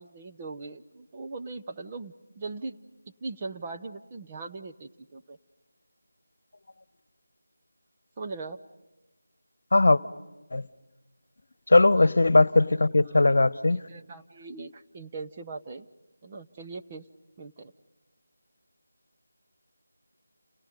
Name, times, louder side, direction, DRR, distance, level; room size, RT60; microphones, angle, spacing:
voice 1, 0.0-2.8 3.2-5.4 8.2-8.6 11.9-12.3 13.7-15.9 16.2-17.0 17.4-17.7, right 3 dB, 25° right, 0.9 m, -40 dB
voice 2, 11.7-13.9, left 2 dB, 60° left, 1.1 m, -19 dB
30.0 x 30.0 x 5.3 m
figure-of-eight pair, 170°, 0 cm